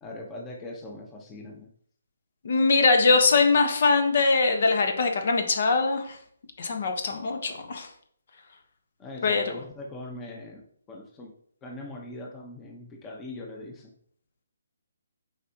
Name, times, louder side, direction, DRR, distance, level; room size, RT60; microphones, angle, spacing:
voice 1, 0.0-1.7 7.1-7.5 9.0-11.3 11.6-13.9, left 2 dB, 15° left, 0 dB, 1.0 m, -41 dB
voice 2, 2.4-6.2 6.6-7.9 9.2-9.6, left 4 dB, 55° left, 5 dB, 1.2 m, -22 dB
7.9 x 5.1 x 2.9 m, 0.62 s
hypercardioid pair, 150°, 0 cm